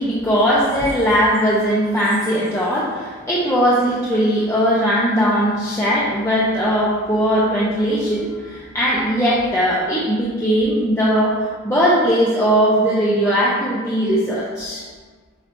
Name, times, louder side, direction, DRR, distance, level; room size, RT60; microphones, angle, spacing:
voice 1, 0.0-14.8, equal, 15° left, -8 dB, 0.8 m, -19 dB
9.0 x 5.8 x 2.7 m, 1.5 s
head